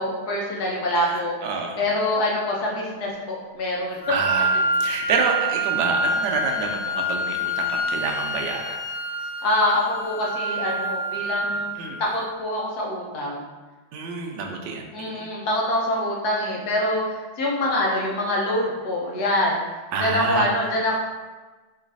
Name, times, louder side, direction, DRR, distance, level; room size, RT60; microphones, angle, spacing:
voice 1, 0.0-1.3 1.8-4.0 9.4-13.4 14.9-19.6 20.0-21.0, left 1 dB, 60° left, -3 dB, 1.2 m, -25 dB
voice 2, 0.9-1.8 4.1-8.8 11.8-12.0 13.9-15.3 19.9-20.5, right 4 dB, 70° right, 2 dB, 1.1 m, -28 dB
Wind instrument woodwind instrument, 4.0-12.0, right 1 dB, 5° left, 0.8 m, -26 dB
3.9 x 3.2 x 3.9 m, 1.3 s
omnidirectional pair, 2.3 m